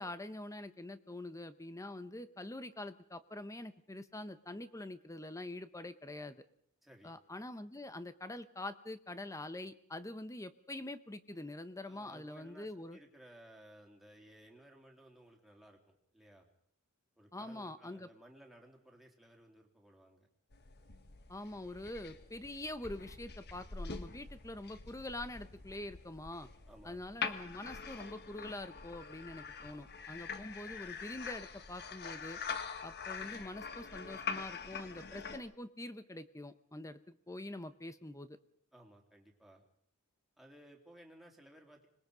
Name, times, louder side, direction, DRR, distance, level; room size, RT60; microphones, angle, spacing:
voice 1, 0.0-6.4 7.0-13.0 17.3-18.1 21.3-26.5 26.8-32.4 32.8-38.4, left 1 dB, 15° left, 12 dB, 1.0 m, -45 dB
voice 2, 6.8-7.1 11.8-16.5 17.2-20.3 26.7-27.1 38.7-39.6 40.4-41.9, right 1 dB, ahead, 0 dB, 3.5 m, -58 dB
sound 1, 20.5-35.4, left 5 dB, 45° left, 1.4 m, -44 dB
26.0 x 21.0 x 5.2 m, 0.64 s
head